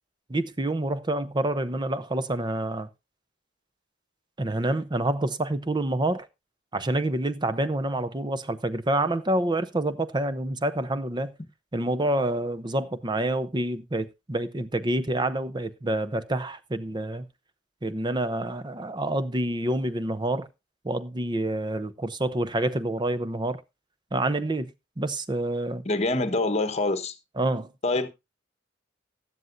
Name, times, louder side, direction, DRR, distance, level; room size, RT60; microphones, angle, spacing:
voice 1, 0.3-2.9 4.4-6.3 6.7-11.3 11.7-17.3 17.8-20.5 20.8-23.6 24.1-24.7 25.0-25.8 27.4-27.7, right 1 dB, 25° right, 0.7 m, -27 dB
voice 2, 25.8-27.2 27.8-28.1, left 2 dB, 35° left, 1.1 m, -25 dB
15.5 x 11.0 x 2.6 m
head